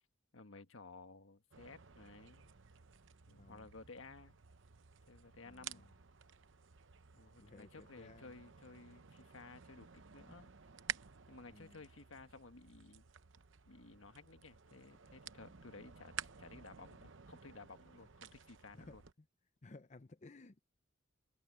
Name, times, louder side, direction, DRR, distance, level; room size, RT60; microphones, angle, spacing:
voice 1, 0.3-2.5 3.3-4.4 5.1-5.9 7.1-10.5 11.3-13.1 13.7-16.1 16.4-19.0, left 3 dB, 75° left, 1.5 m, -56 dB
sound 1, 1.5-19.1, right 8 dB, 65° right, 0.8 m, -53 dB
voice 2, 3.4-3.7 5.5-5.9 7.4-8.4 11.5-11.8 18.8-19.0 19.6-20.6, left 2 dB, 35° left, 0.6 m, -57 dB
head